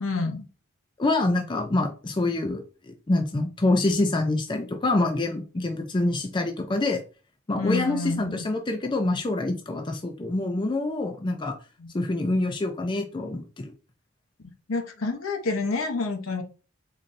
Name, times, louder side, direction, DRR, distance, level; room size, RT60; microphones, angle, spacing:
voice 1, 0.0-0.5 7.6-8.4 11.8-11.9 14.7-16.4, left 3 dB, 75° left, 5 dB, 0.8 m, -28 dB
voice 2, 1.0-7.0 7.5-11.6 11.9-13.7, left 2 dB, 20° left, 4 dB, 0.4 m, -26 dB
4.0 x 3.1 x 2.5 m, 0.34 s
head